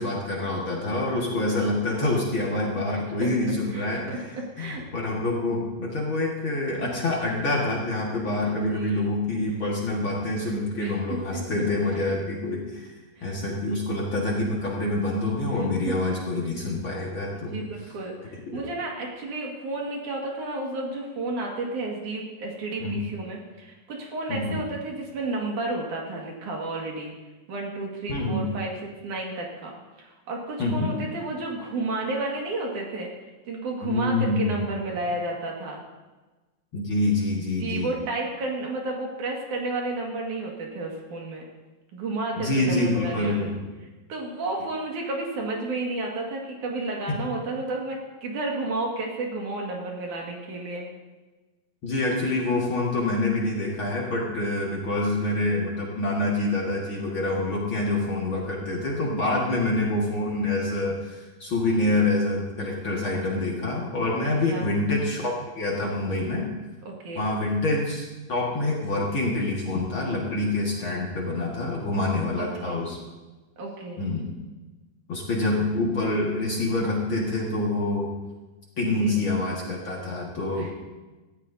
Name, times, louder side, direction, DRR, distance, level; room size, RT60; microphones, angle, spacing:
voice 1, 0.0-12.9 13.2-17.6 18.5-18.6 22.8-22.9 24.3-24.6 28.1-28.5 30.6-30.9 33.8-34.7 36.7-37.9 42.4-43.6 47.1-47.2 51.8-66.5 67.2-73.0 74.0-74.3 75.1-78.1 78.8-80.8, left 2 dB, 45° left, -3 dB, 2.2 m, -26 dB
voice 2, 2.9-3.3 3.7-4.2 4.6-4.8 8.5-9.1 10.8-11.4 11.9-12.1 13.2-13.3 15.6-15.7 17.3-27.1 27.5-29.7 30.0-33.1 33.5-35.8 37.6-41.5 41.9-43.5 44.1-50.9 59.1-59.5 64.2-64.7 66.9-67.2 72.4-72.8 73.6-74.1 78.8-79.2 80.6-80.7, right 2 dB, 65° right, -1 dB, 3.4 m, -32 dB
18.5 x 14.0 x 2.8 m, 1.2 s
omnidirectional pair, 3.8 m